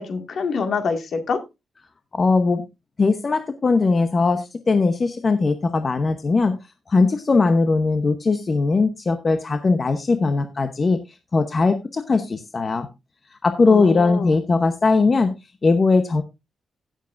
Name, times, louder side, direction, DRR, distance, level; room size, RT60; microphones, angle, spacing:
voice 1, 0.0-1.4 13.7-14.3, left 5 dB, 60° left, 2.0 m, -26 dB
voice 2, 2.1-2.6 3.0-6.6 6.9-12.9 13.3-15.3 15.6-16.2, left 3 dB, 30° left, 0.9 m, -19 dB
16.5 x 7.4 x 2.5 m
wide cardioid pair, 135°, 0 cm